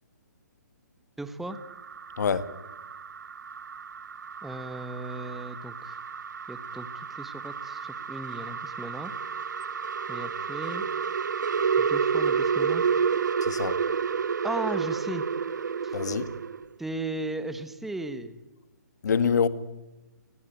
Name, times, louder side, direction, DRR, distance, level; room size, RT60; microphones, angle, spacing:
voice 1, 1.2-1.6 4.4-6.0 6.5-9.1 10.1-10.8 11.8-12.8 14.4-15.2 15.8-16.0 16.8-18.4, right 2 dB, ahead, 1.1 m, -36 dB
sound 1, 1.5-16.6, right 6 dB, 85° right, 0.9 m, -30 dB
voice 2, 13.5-13.8 15.9-16.3 19.0-19.5, left 6 dB, 70° left, 1.8 m, -25 dB
29.5 x 19.5 x 9.2 m
hypercardioid pair, 160°, 10 cm